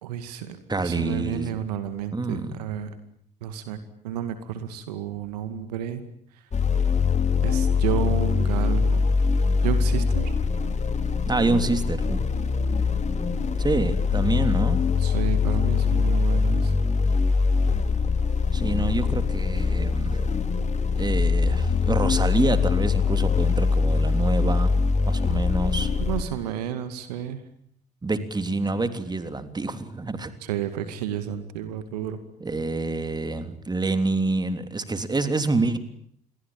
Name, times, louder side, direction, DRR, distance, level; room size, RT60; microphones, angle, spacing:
voice 1, 0.0-0.6 0.8-2.9 3.4-3.8 4.0-6.0 7.4-9.1 9.6-10.3 15.0-16.7 26.0-27.4 30.4-32.2, right 9 dB, 75° right, 11 dB, 2.3 m, -31 dB
voice 2, 0.7-1.5 2.1-2.6 11.3-12.2 13.6-14.9 18.5-20.3 21.0-24.7 25.0-26.0 28.0-30.3 32.4-35.8, right 3 dB, 20° right, 10 dB, 3.3 m, -27 dB
sound 1, 6.5-26.2, left 5 dB, 35° left, 3.2 m, -23 dB
28.5 x 22.5 x 8.9 m, 0.67 s
figure-of-eight pair, 50°, 21 cm